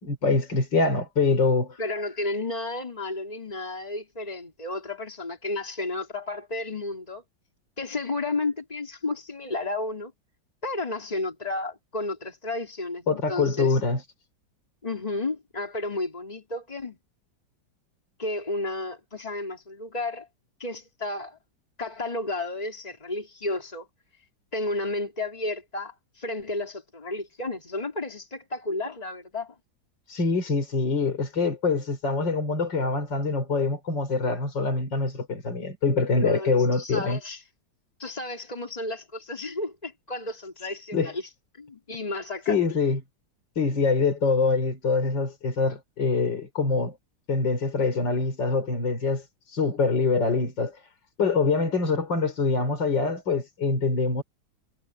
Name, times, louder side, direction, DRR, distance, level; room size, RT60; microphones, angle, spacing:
voice 1, 0.0-1.8 13.1-14.0 30.1-37.2 40.9-41.1 42.5-43.0 43.6-47.0 47.3-50.8 51.2-54.2, left 4 dB, 70° left, 4.9 m, -24 dB
voice 2, 1.8-7.2 7.8-10.1 10.6-13.8 14.8-17.0 18.2-20.3 20.6-21.4 21.8-23.9 24.5-29.5 36.1-37.4 38.0-41.3 41.6-42.6, left 2 dB, 20° left, 3.3 m, -32 dB
omnidirectional pair, 2.0 m